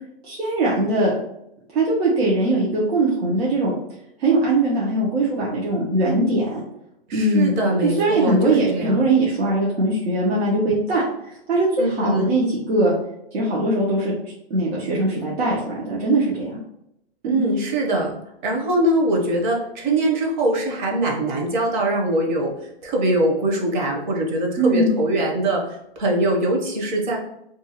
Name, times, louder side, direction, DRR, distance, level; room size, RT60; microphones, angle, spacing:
voice 1, 0.2-1.1 1.7-3.7 4.2-6.6 7.1-7.5 7.8-12.9 13.3-14.1 14.5-16.6 17.2-17.4 24.6-24.9, right 2 dB, 90° right, -6 dB, 0.9 m, -21 dB
voice 2, 7.1-9.0 11.8-12.3 17.2-18.2 18.4-22.5 22.8-27.2, right 1 dB, 50° right, 0 dB, 0.8 m, -22 dB
2.6 x 2.4 x 2.9 m, 0.80 s
hypercardioid pair, 155°, 30 cm